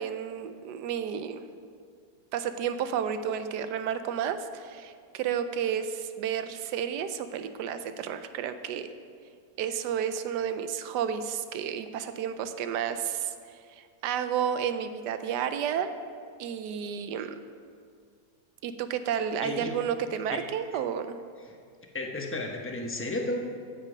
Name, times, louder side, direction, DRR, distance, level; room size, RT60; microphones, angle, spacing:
voice 1, 0.0-1.4 2.3-8.9 9.6-13.3 13.8-16.0 16.4-17.4 18.6-21.2, right 8 dB, 80° right, 10 dB, 1.2 m, -31 dB
voice 2, 21.9-23.4, left 2 dB, 15° left, 1 dB, 0.5 m, -32 dB
14.5 x 5.3 x 5.1 m, 2.2 s
omnidirectional pair, 1.8 m